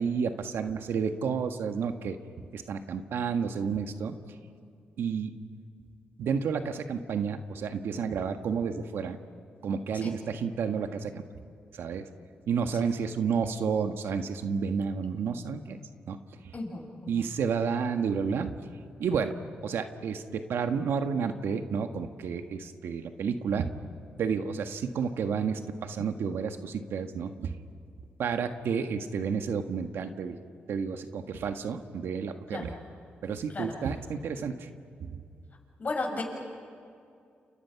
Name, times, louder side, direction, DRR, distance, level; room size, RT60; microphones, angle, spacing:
voice 1, 0.0-2.2 2.5-4.2 5.0-5.4 6.2-9.2 9.6-11.2 11.8-12.0 12.5-15.8 16.1-16.2 16.4-16.5 17.1-18.5 19.0-19.3 19.6-23.7 24.2-27.5 28.2-30.4 30.7-32.7 33.2-34.7 35.0-35.2, right 6 dB, 80° right, 7 dB, 1.5 m, -31 dB
voice 2, 16.5-16.9 17.1-17.2 32.5-32.8 33.5-33.7 35.8-36.2, left 3 dB, 40° left, 0 dB, 7.2 m, -33 dB
30.0 x 29.0 x 5.9 m, 2.3 s
cardioid pair, 70°, 4 cm